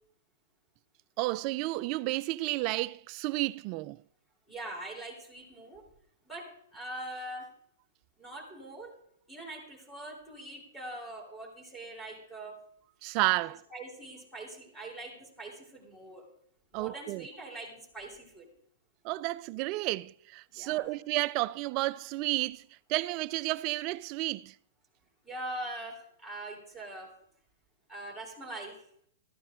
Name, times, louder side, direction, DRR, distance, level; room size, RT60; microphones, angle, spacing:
voice 1, 1.2-4.0 13.0-13.6 16.7-17.3 19.0-22.6 22.9-24.5, right 20 dB, 40° right, 0.4 m, -31 dB
voice 2, 4.5-5.8 6.3-7.5 8.2-8.9 9.3-12.6 13.7-16.3 16.7-18.5 20.5-20.9 25.2-27.1 27.9-28.8, right 1 dB, ahead, 3.6 m, -43 dB
13.0 x 12.5 x 3.7 m
hypercardioid pair, 135°, 0 cm